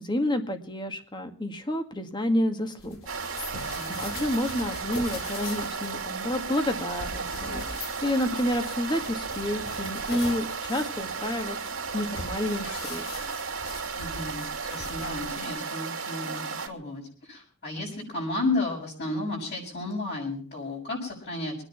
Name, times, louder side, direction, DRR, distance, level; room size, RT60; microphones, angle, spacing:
voice 1, 0.0-3.0 3.5-11.6 11.9-13.2, left 1 dB, 20° left, 7 dB, 2.0 m, -29 dB
sound 1, 2.8-15.5, left 2 dB, 70° left, 3.9 m, -42 dB
sound 2, 3.1-16.7, right 5 dB, 75° right, 2.7 m, -34 dB
voice 2, 13.9-21.6, left 2 dB, 50° left, -7 dB, 7.1 m, -33 dB
23.5 x 9.9 x 5.9 m, 0.43 s
head